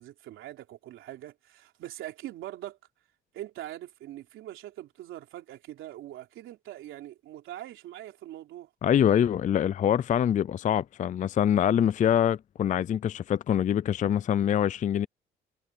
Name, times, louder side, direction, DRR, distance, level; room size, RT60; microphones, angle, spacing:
voice 1, 0.0-2.8 3.3-8.7, right 13 dB, 90° right, 3.4 m, -42 dB
voice 2, 8.8-15.1, left 9 dB, 40° left, 0.4 m, -24 dB
cardioid pair, 90°, 20 cm